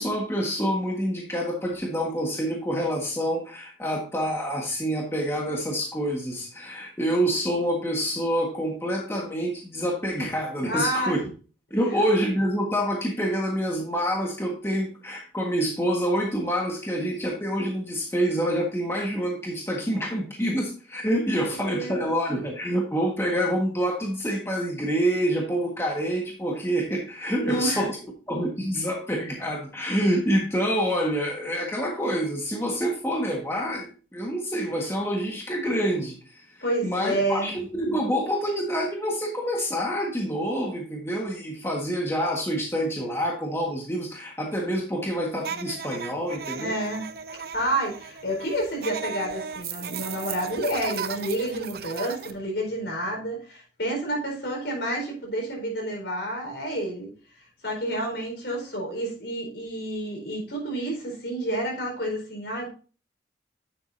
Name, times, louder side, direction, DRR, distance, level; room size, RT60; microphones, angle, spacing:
voice 1, 0.0-11.2 11.7-27.9 28.3-46.7, equal, 15° left, -1 dB, 1.5 m, -27 dB
voice 2, 10.7-11.2 11.9-12.0 21.4-22.1 27.4-27.8 36.6-37.5 46.5-47.0 47.5-57.1 57.6-62.7, right 1 dB, 70° left, 0 dB, 4.4 m, -29 dB
sound 1, 45.4-52.3, right 7 dB, 60° right, 0.7 m, -36 dB
9.8 x 7.7 x 2.7 m, 0.36 s
head